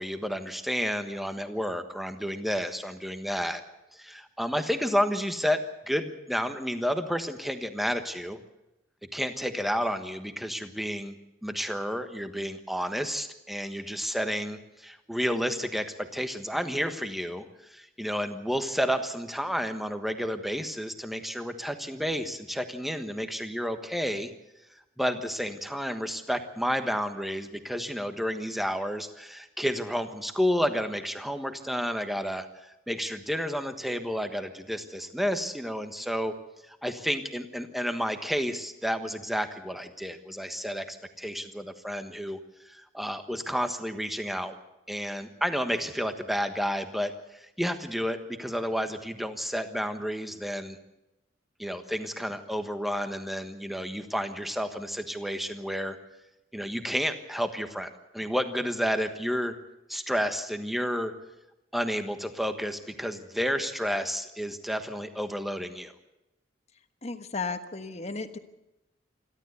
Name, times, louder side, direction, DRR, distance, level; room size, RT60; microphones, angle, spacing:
voice 1, 0.0-3.6 3.9-8.4 9.1-11.1 11.4-24.3 25.0-36.3 36.7-42.4 42.7-44.5 44.9-50.8 51.6-56.0 56.5-59.6 59.9-61.1 61.7-65.9, equal, ahead, 8 dB, 1.3 m, -31 dB
voice 2, 67.0-68.4, left 4 dB, 35° left, 9 dB, 1.3 m, -34 dB
28.0 x 12.5 x 8.2 m, 0.92 s
head